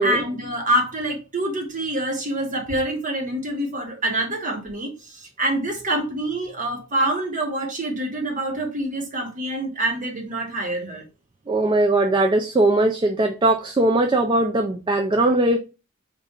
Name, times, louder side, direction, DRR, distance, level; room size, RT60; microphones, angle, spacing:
voice 1, 0.0-11.0, right 1 dB, 40° right, 1.2 m, -26 dB
voice 2, 11.5-15.6, right 2 dB, 20° right, 0.4 m, -20 dB
3.6 x 2.5 x 4.1 m
head